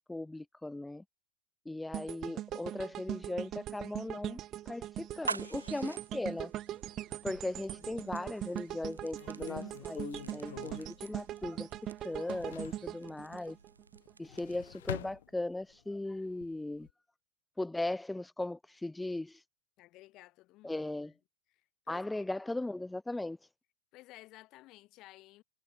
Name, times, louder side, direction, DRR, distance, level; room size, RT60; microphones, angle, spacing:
voice 1, 0.1-1.0 1.6-4.4 4.7-6.5 7.2-11.7 12.0-13.6 14.2-16.9 17.6-19.4 20.6-21.1 21.9-23.4, left 2 dB, 5° left, 0.9 m, -38 dB
sound 1, 1.9-14.1 14.5-14.7, right 13 dB, 30° right, 0.6 m, -41 dB
sound 2, 5.0-14.8, right 4 dB, 75° right, 0.5 m, -47 dB
voice 2, 5.1-6.0 19.8-21.1 21.9-22.1 23.9-25.4, left 18 dB, 40° left, 7.6 m, -55 dB
sound 3, 7.2-8.2 8.7-8.8 9.2-11.8 12.1-12.9 14.1-15.8 16.3-16.9, left 12 dB, 60° left, 2.7 m, -46 dB
figure-of-eight pair, 90°, 0 cm